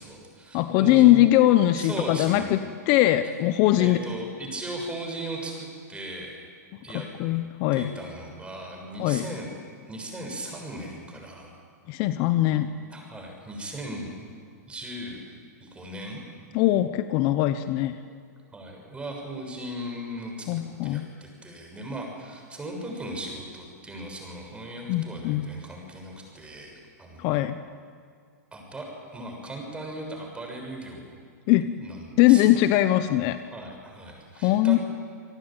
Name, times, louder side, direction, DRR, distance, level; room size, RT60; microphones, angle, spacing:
voice 1, 0.0-1.3 1.7-2.5 3.7-6.4 6.8-7.1 7.7-9.5 9.9-11.5 12.5-12.6 12.9-14.2 14.7-15.3 15.6-16.2 18.5-27.4 28.5-31.2 31.8-32.4 33.5-34.8, right 1 dB, 10° right, 1 dB, 6.9 m, -37 dB
voice 2, 0.5-2.6 2.9-4.0 7.2-7.9 9.0-9.3 11.9-12.7 16.5-17.9 20.5-21.1 24.9-25.5 27.2-27.6 31.5-31.7 32.2-33.4 34.4-34.8, left 15 dB, 45° left, 10 dB, 1.0 m, -21 dB
28.0 x 18.5 x 9.2 m, 2.1 s
hypercardioid pair, 125°, 9 cm